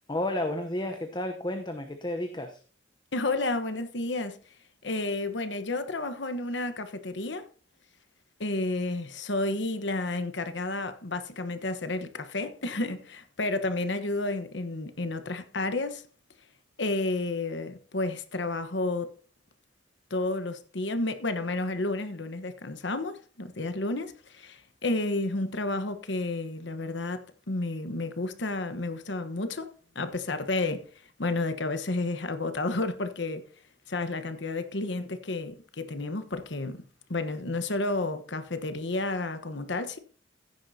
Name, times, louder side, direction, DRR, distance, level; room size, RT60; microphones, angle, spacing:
voice 1, 0.1-2.6, left 1 dB, 25° left, 0.9 m, -32 dB
voice 2, 3.1-4.4 4.8-7.4 8.4-16.0 16.8-19.1 20.1-33.4 33.9-36.8 37.1-40.0, left 2 dB, 70° left, 1.2 m, -31 dB
15.5 x 9.6 x 2.8 m
head